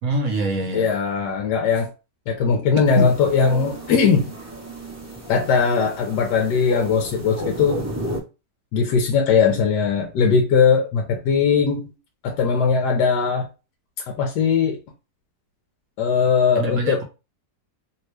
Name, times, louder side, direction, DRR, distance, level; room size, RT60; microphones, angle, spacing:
voice 1, 0.0-0.9 3.0-3.1 16.5-17.0, right 2 dB, 65° right, 1.1 m, -24 dB
voice 2, 0.7-1.9 2.3-4.3 5.3-7.9 8.7-11.9 12.2-13.5 14.1-14.8 16.0-17.0, left 5 dB, 75° left, 1.2 m, -19 dB
sound 1, 2.9-8.2, right 1 dB, 25° right, 0.3 m, -33 dB
2.9 x 2.8 x 3.1 m
omnidirectional pair, 1.9 m